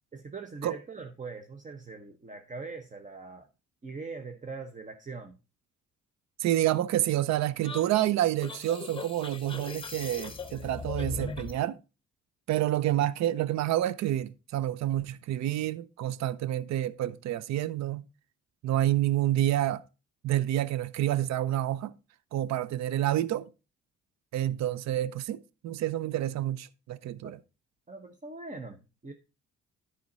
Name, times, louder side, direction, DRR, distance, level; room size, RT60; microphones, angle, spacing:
voice 1, 0.1-3.5 3.8-5.4 27.2-27.3 27.9-29.1, right 4 dB, 25° right, 0.9 m, -42 dB
voice 2, 6.4-11.8 12.5-18.0 18.6-19.8 20.2-21.9 22.3-23.5 24.3-27.4, right 13 dB, 65° right, 0.5 m, -28 dB
sound 1, 7.6-11.6, left 4 dB, 15° left, 0.9 m, -39 dB
10.5 x 5.0 x 4.0 m
cardioid pair, 90°, 30 cm